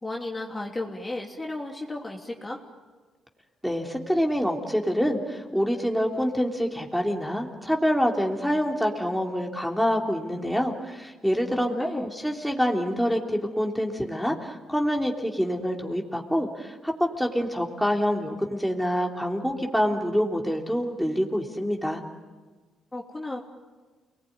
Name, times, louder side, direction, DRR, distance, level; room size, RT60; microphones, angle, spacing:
voice 1, 0.0-2.6 11.5-12.0 22.9-23.4, left 2 dB, 20° left, 0 dB, 3.0 m, -34 dB
voice 2, 3.6-22.0, equal, ahead, 0 dB, 3.4 m, -26 dB
29.5 x 20.5 x 9.5 m, 1.3 s
cardioid pair, 90°, 0 cm